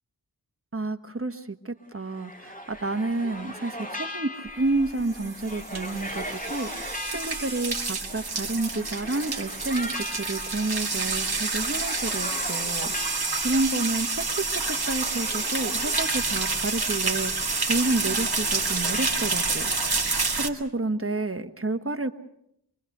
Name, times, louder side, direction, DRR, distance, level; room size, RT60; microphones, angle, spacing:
voice 1, 0.7-13.1 13.4-19.7 20.4-22.1, right 2 dB, 30° right, 8 dB, 1.3 m, -30 dB
sound 1, 1.8-20.4, left 1 dB, 20° left, 2.6 m, -39 dB
sound 2, 4.8-20.5, right 4 dB, 60° right, 1.9 m, -28 dB
24.0 x 23.5 x 6.6 m, 0.77 s
wide cardioid pair, 55°, 42 cm